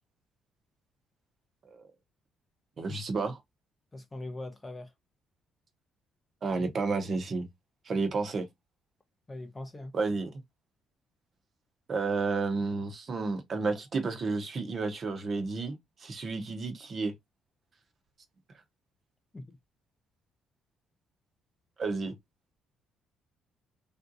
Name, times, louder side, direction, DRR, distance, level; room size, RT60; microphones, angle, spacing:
voice 1, 2.8-3.4 6.4-7.5 7.9-8.5 9.9-10.3 11.9-17.1 21.8-22.1, right 4 dB, 30° right, 0.7 m, -31 dB
voice 2, 3.9-4.9 9.3-9.9 19.3-19.5, left 2 dB, 15° left, 0.5 m, -41 dB
3.5 x 2.6 x 2.5 m
cardioid pair, 175°, 0 cm